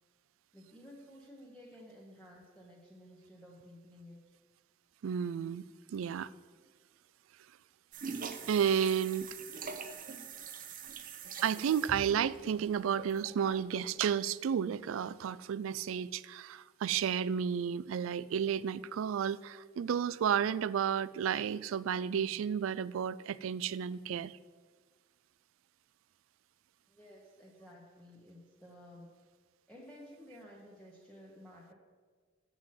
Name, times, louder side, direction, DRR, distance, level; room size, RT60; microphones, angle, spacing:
voice 1, 0.5-4.2 26.9-29.1 29.7-31.7, left 1 dB, 5° left, -4 dB, 1.0 m, -54 dB
voice 2, 5.0-5.6 5.9-6.3 8.5-9.3 11.4-24.4, right 8 dB, 75° right, 19 dB, 0.3 m, -32 dB
sound 1, 7.9-13.8, right 5 dB, 45° right, 0.7 m, -44 dB
8.0 x 6.0 x 7.5 m, 1.5 s
head